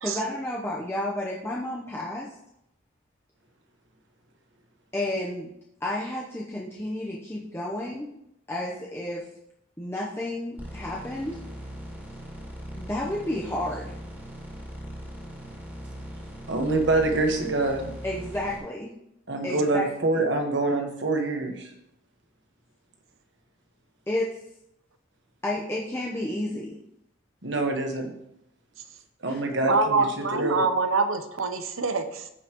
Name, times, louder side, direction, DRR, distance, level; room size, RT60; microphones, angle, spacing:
voice 1, 0.0-2.3 4.9-5.5 5.8-8.2 8.5-9.3 9.8-11.4 12.8-13.9 18.0-18.9 19.4-19.9 24.1-24.3 25.4-26.8 29.3-29.4, left 1 dB, 10° left, -4 dB, 0.8 m, -31 dB
sound 1, 10.6-18.6, equal, 10° right, 2.1 m, -40 dB
voice 2, 16.5-17.9 19.3-21.7 27.4-28.1 29.2-30.1 30.3-30.6, right 2 dB, 60° right, 3 dB, 1.5 m, -25 dB
voice 3, 29.6-32.3, right 4 dB, 85° right, 8 dB, 0.8 m, -25 dB
14.5 x 5.6 x 3.0 m, 0.79 s
head